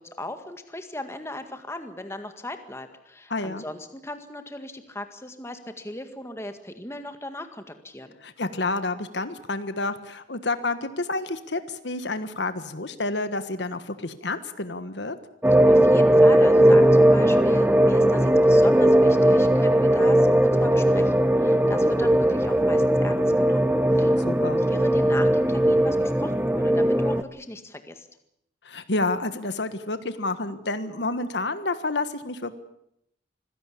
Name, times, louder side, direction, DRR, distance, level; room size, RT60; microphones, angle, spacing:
voice 1, 0.0-8.2 15.7-28.1, left 1 dB, 15° left, 7 dB, 1.8 m, -38 dB
voice 2, 3.3-3.6 8.2-15.1 24.2-24.6 28.6-32.5, left 2 dB, 65° left, 11 dB, 1.5 m, -29 dB
sound 1, 15.4-27.2, right 1 dB, 10° right, 0.9 m, -18 dB
25.0 x 16.5 x 8.5 m, 0.77 s
head